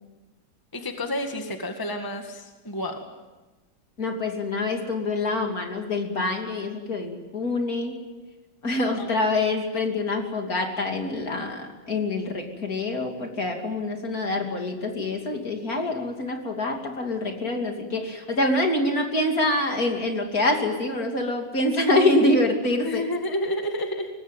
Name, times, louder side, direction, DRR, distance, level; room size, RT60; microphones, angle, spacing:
voice 1, 0.7-3.0 9.0-9.1 22.8-24.1, left 1 dB, 10° left, 4 dB, 1.9 m, -30 dB
voice 2, 4.0-8.0 8.6-23.0, left 2 dB, 50° left, 3 dB, 3.3 m, -25 dB
24.5 x 19.5 x 9.2 m, 1.2 s
omnidirectional pair, 2.0 m